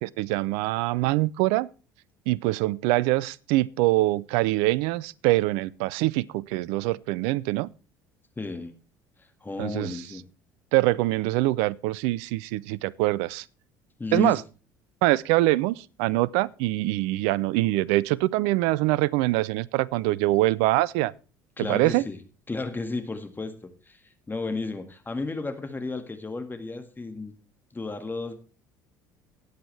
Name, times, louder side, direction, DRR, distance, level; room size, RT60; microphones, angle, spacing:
voice 1, 0.0-1.7 2.3-7.7 9.6-10.0 10.7-13.4 14.1-14.4 15.0-21.1 21.6-22.0, right 19 dB, 65° right, 0.5 m, -24 dB
voice 2, 8.4-8.7 9.2-10.2 14.0-14.4 21.6-22.2 22.5-24.0 24.3-27.4 27.7-28.4, left 3 dB, 20° left, 1.8 m, -33 dB
19.5 x 8.1 x 3.2 m
figure-of-eight pair, 60°, 11 cm